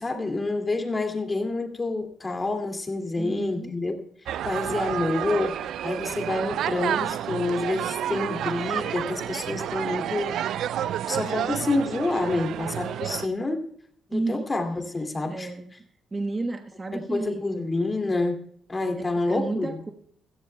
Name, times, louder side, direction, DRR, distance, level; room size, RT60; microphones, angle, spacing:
voice 1, 0.0-3.9 4.4-10.4 11.1-13.6 14.1-15.5 16.9-18.4 18.7-19.8, left 2 dB, 25° left, 5 dB, 2.3 m, -28 dB
voice 2, 3.2-3.7 14.1-14.5 15.2-15.7 16.1-17.4 19.0-19.9, right 3 dB, 25° right, 6 dB, 1.2 m, -32 dB
sound 1, 4.3-13.3, right 11 dB, 75° right, 0.4 m, -30 dB
16.5 x 15.0 x 2.2 m, 0.63 s
cardioid pair, 90°, 0 cm